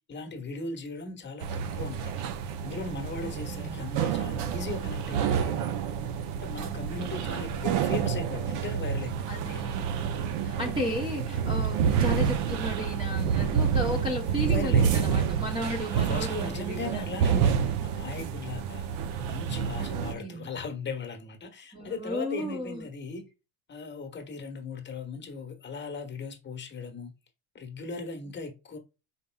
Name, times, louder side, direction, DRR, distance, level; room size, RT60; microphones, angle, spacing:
voice 1, 0.1-2.2 2.6-5.6 6.4-9.6 14.3-15.1 15.9-18.9 19.3-23.3 23.7-27.1 27.5-28.8, left 3 dB, 25° left, 1.1 m, -38 dB
sound 1, 1.4-20.1, right 7 dB, 75° right, 0.7 m, -28 dB
voice 2, 3.2-3.8 6.6-6.9 9.3-17.4 19.8-20.5 21.7-22.8, equal, 10° right, 0.8 m, -34 dB
5.2 x 4.3 x 2.2 m
cardioid pair, 140°, 46 cm